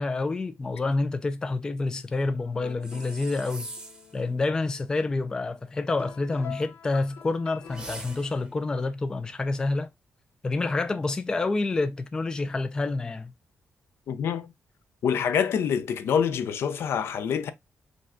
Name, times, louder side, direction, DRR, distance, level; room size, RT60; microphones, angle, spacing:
voice 1, 0.0-3.7 4.1-9.9 10.4-13.3, left 3 dB, 15° left, 0.3 m, -28 dB
sound 1, 2.3-8.3, left 9 dB, 90° left, 0.9 m, -47 dB
sound 2, 2.8-4.2 7.7-8.5, right 2 dB, 15° right, 0.7 m, -42 dB
voice 2, 14.1-14.5 15.0-17.5, left 7 dB, 65° left, 0.6 m, -26 dB
5.1 x 2.2 x 3.6 m
wide cardioid pair, 180°, 4 cm